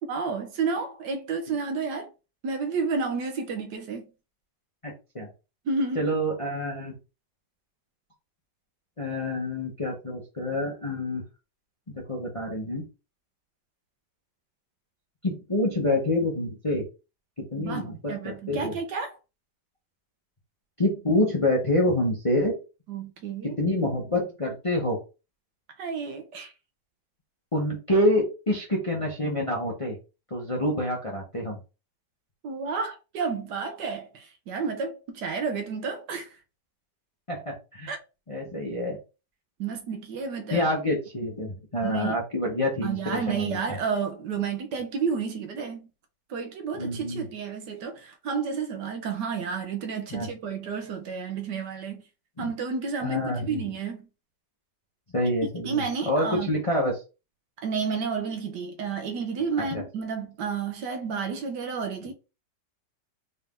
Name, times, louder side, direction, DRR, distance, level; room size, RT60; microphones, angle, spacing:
voice 1, 0.1-2.1 2.4-4.0 5.7-6.1 17.6-19.1 22.9-23.6 25.8-26.5 32.4-36.3 37.9-38.0 39.6-40.7 41.8-42.2 42.8-45.9 46.3-52.0 52.4-54.1 55.6-56.5 57.6-62.1, right 5 dB, 70° right, 1.3 m, -31 dB
voice 2, 4.8-5.3 5.9-6.9 9.0-11.2 11.9-12.8 15.2-16.9 17.5-18.8 20.8-22.6 23.4-25.0 27.5-30.0 30.3-31.6 37.3-37.9 38.3-39.0 40.5-43.8 46.7-47.2 50.1-50.3 52.4-52.5 53.0-53.6 55.1-57.0 59.6-59.8, left 1 dB, 25° left, 0.7 m, -27 dB
4.1 x 2.7 x 3.6 m
omnidirectional pair, 2.0 m